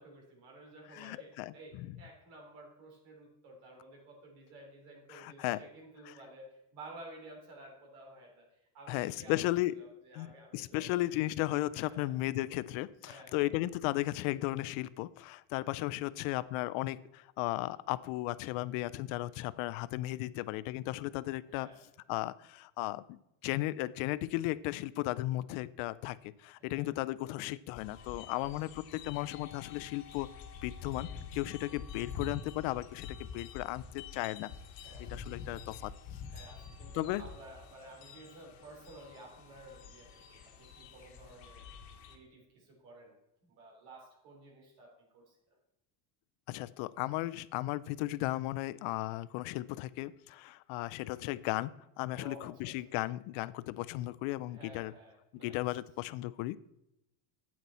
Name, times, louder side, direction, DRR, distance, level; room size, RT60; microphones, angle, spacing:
voice 1, 0.0-8.5 8.7-10.9 11.8-12.2 13.0-13.5 15.7-15.9 21.4-21.8 26.6-26.9 28.3-28.6 31.6-31.8 34.8-35.2 36.3-41.7 42.0-43.1 43.4-45.3 52.1-52.7 54.5-55.6, right 2 dB, 80° right, 0 dB, 3.7 m, -53 dB
voice 2, 0.9-2.0 5.1-5.6 6.1-6.2 8.9-9.8 10.1-21.7 22.1-30.3 30.6-34.5 35.0-35.9 36.9-37.2 46.5-54.9 55.4-56.6, left 17 dB, 80° left, 18 dB, 0.6 m, -35 dB
sound 1, 27.8-42.2, left 6 dB, 50° left, 1.3 m, -47 dB
9.3 x 8.6 x 4.2 m, 0.85 s
cardioid pair, 170°, 47 cm